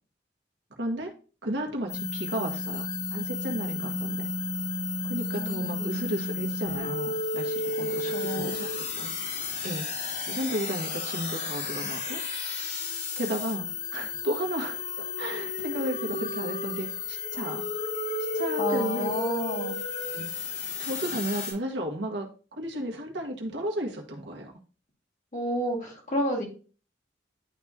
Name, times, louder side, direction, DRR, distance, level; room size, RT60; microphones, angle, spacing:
voice 1, 0.8-1.1 1.4-4.3 5.0-9.1 9.6-9.9 10.3-12.2 13.1-13.7 13.9-17.6 18.2-19.1 20.1-20.3 20.8-24.5, right 1 dB, 80° right, 1 dB, 1.6 m, -34 dB
sound 1, 1.9-21.5, left 3 dB, 80° left, 3.1 m, -32 dB
voice 2, 5.3-6.0 7.8-8.6 18.6-19.8 25.3-26.4, equal, 45° left, -1 dB, 2.3 m, -31 dB
11.0 x 3.7 x 2.8 m, 0.37 s
head